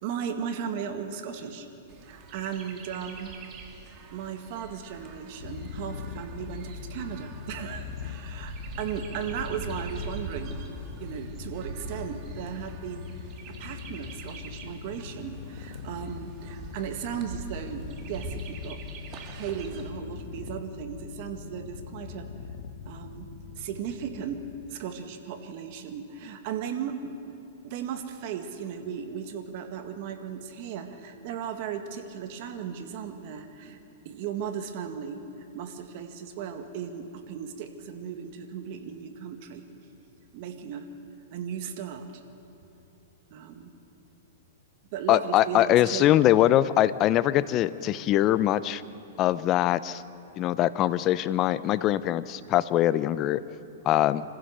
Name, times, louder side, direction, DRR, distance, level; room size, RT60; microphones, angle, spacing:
voice 1, 0.0-1.7 2.0-3.3 4.1-13.2 13.5-18.8 19.1-22.3 22.9-23.3 23.6-27.4 27.6-33.8 34.1-39.6 40.3-40.9 41.3-42.1 43.3-43.7 44.9-46.1, right 7 dB, 50° right, 6 dB, 1.9 m, -36 dB
Chirp tweet, 1.9-19.9, right 5 dB, 30° right, 2.1 m, -43 dB
Purr, 5.3-24.7, left 7 dB, 65° left, 1.3 m, -41 dB
voice 2, 45.1-48.8 49.2-50.0 50.4-53.4 53.9-54.2, left 13 dB, 30° left, 16 dB, 0.6 m, -22 dB
26.5 x 15.5 x 6.7 m, 2.9 s
hypercardioid pair, 145°, 0 cm